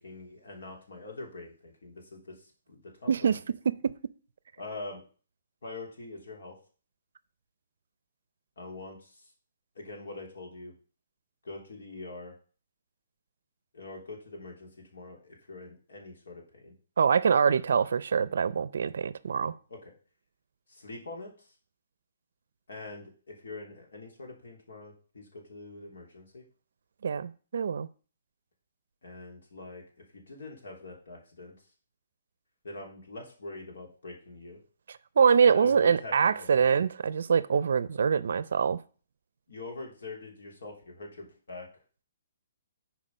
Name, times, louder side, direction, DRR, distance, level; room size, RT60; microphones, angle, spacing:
voice 1, 0.0-3.3 4.6-5.0 5.6-6.6 8.6-9.3 9.7-10.8 11.4-12.3 13.7-16.7 19.7-19.9 20.7-21.5 22.7-26.4 29.0-29.8 30.1-31.5 32.6-34.6 35.4-36.6 39.5-41.7, left 2 dB, 75° left, 3.3 m, -44 dB
voice 2, 3.1-3.4 3.7-3.9 17.0-19.5 27.0-27.9 34.9-38.8, right 6 dB, 60° right, 0.5 m, -24 dB
10.0 x 4.8 x 5.5 m
hypercardioid pair, 175°, 0 cm